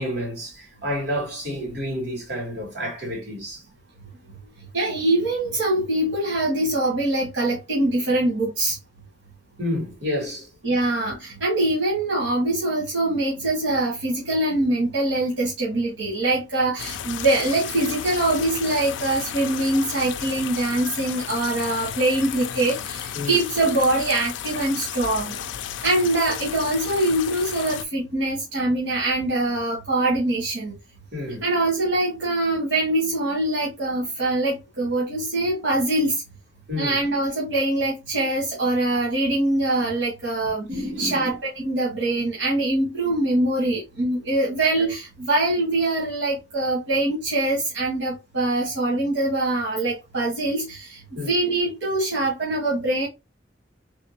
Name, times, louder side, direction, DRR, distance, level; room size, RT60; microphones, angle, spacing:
voice 1, 0.0-3.6 9.6-10.5 23.1-23.4 31.1-31.5 36.7-37.0 40.7-41.4 44.8-44.9 51.1-51.3, left 1 dB, 65° right, 2.4 m, -29 dB
voice 2, 4.7-8.8 10.6-25.4 25.8-30.8 31.4-36.2 36.8-40.7 41.0-53.1, right 2 dB, 90° right, 1.3 m, -23 dB
sound 1, 16.8-27.8, left 10 dB, 90° left, 0.3 m, -33 dB
3.6 x 3.1 x 2.7 m
head